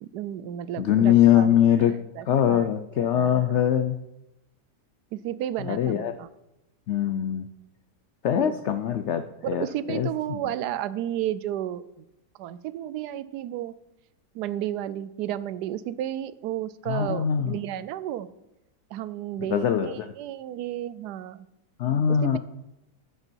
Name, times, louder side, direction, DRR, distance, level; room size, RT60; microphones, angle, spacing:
voice 1, 0.0-1.9 2.1-2.7 3.0-3.7 5.1-6.3 8.4-8.6 9.4-12.1 12.4-13.7 14.3-18.3 18.9-21.5 22.1-22.4, right 12 dB, 75° right, 16 dB, 1.1 m, -33 dB
voice 2, 0.8-2.0 2.3-4.0 5.6-6.1 6.9-7.5 8.2-10.4 16.9-17.6 19.5-20.0 21.8-22.4, left 10 dB, 75° left, 9 dB, 0.6 m, -22 dB
14.0 x 6.8 x 4.5 m, 0.88 s
omnidirectional pair, 1.8 m